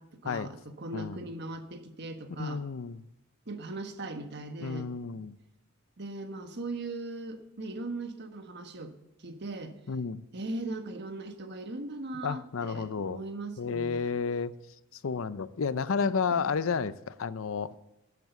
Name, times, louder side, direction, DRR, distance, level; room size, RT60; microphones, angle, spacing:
voice 1, 0.0-2.6 3.5-4.9 6.0-8.9 9.2-9.8 10.3-14.2 16.3-16.8, right 2 dB, 55° right, 7 dB, 1.3 m, -39 dB
voice 2, 2.4-3.0 4.6-5.3 9.9-10.2 12.2-13.2 13.6-14.5 14.9-17.8, left 5 dB, 70° left, 16 dB, 0.5 m, -31 dB
11.0 x 8.5 x 7.1 m, 0.95 s
head